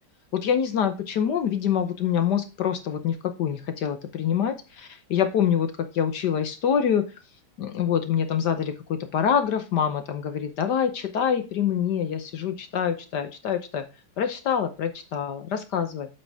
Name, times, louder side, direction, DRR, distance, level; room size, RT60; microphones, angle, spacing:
voice 1, 0.3-5.7 5.9-7.0 7.6-13.8 14.2-16.1, left 8 dB, 65° left, 9 dB, 1.4 m, -25 dB
8.7 x 5.4 x 3.5 m, 0.30 s
omnidirectional pair, 2.2 m